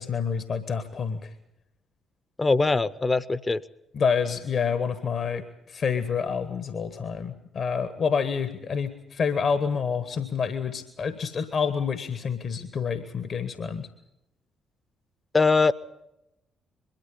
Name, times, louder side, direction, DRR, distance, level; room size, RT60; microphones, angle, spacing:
voice 1, 0.0-1.3 3.9-13.9, left 6 dB, 50° left, 11 dB, 1.4 m, -28 dB
voice 2, 2.4-3.6 15.3-15.7, left 3 dB, 25° left, 18 dB, 0.9 m, -21 dB
22.0 x 13.5 x 10.0 m, 0.86 s
figure-of-eight pair, 45°, 0 cm